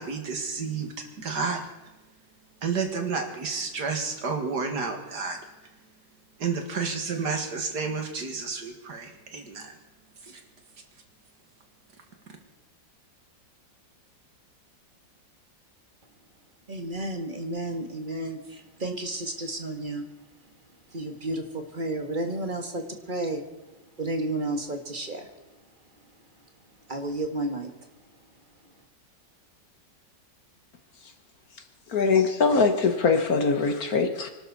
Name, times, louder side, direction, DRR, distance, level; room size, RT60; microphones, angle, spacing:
voice 1, 0.0-1.6 2.6-5.4 6.4-9.7 10.2-10.4, right 5 dB, 60° right, 4 dB, 2.4 m, -31 dB
voice 2, 16.7-20.0 20.9-23.4 24.0-25.3 26.9-27.7, right 1 dB, 25° right, 5 dB, 1.7 m, -32 dB
voice 3, 31.9-34.3, left 4 dB, 55° left, 7 dB, 1.5 m, -22 dB
25.0 x 12.0 x 4.1 m, 1.1 s
omnidirectional pair, 2.0 m